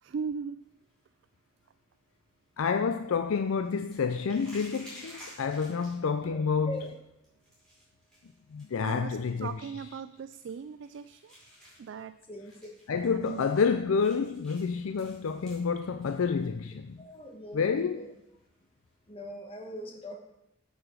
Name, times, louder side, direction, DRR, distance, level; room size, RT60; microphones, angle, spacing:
voice 1, 0.0-0.6 8.8-11.3 11.8-12.2 13.1-13.4, right 6 dB, 60° right, 0.3 m, -38 dB
sound 1, 0.6-19.1, equal, 5° left, 4.6 m, -56 dB
voice 2, 2.6-6.9 8.5-9.6 12.9-17.1 17.5-18.1, left 5 dB, 80° left, 0.4 m, -29 dB
voice 3, 12.3-12.7 17.0-18.1 19.1-20.2, equal, 25° left, 1.4 m, -41 dB
8.1 x 8.0 x 6.0 m
head